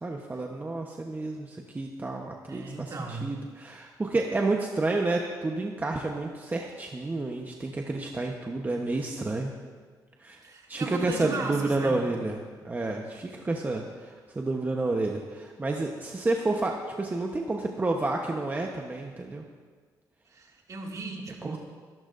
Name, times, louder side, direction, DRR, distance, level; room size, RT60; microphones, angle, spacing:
voice 1, 0.0-9.5 10.2-10.4 10.7-19.4 21.4-21.6, right 2 dB, 25° right, 1 dB, 1.1 m, -30 dB
voice 2, 2.5-3.3 10.4-12.1 20.3-21.6, right 3 dB, 50° right, -1 dB, 2.5 m, -37 dB
22.0 x 12.0 x 2.6 m, 1.5 s
cardioid pair, 85°, 7 cm